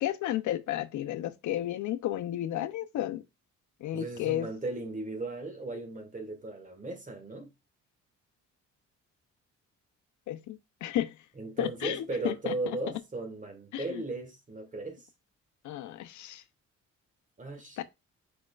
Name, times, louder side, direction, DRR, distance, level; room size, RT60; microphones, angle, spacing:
voice 1, 0.0-3.2 3.8-4.5 10.3-11.1 11.6-12.5 13.7-14.0 15.6-16.4 17.8-17.9, left 13 dB, 75° left, 0.6 m, -32 dB
voice 2, 3.9-7.5 11.4-15.0 17.4-17.8, right 2 dB, 25° right, 1.7 m, -37 dB
4.8 x 4.4 x 2.4 m
cardioid pair, 90°, 30 cm